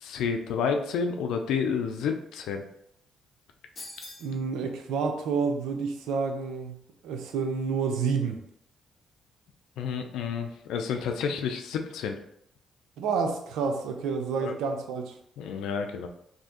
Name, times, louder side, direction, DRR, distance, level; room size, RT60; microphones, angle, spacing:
voice 1, 0.0-2.6 9.8-12.2 14.4-14.6 15.4-16.1, left 6 dB, 85° left, 5 dB, 0.4 m, -30 dB
sound 1, 3.8-4.4, left 2 dB, 35° left, 1.0 m, -43 dB
voice 2, 4.2-6.8 7.0-8.4 13.0-15.1, right 5 dB, 85° right, 4 dB, 0.5 m, -29 dB
2.7 x 2.5 x 3.6 m, 0.72 s
cardioid pair, 90°, 0 cm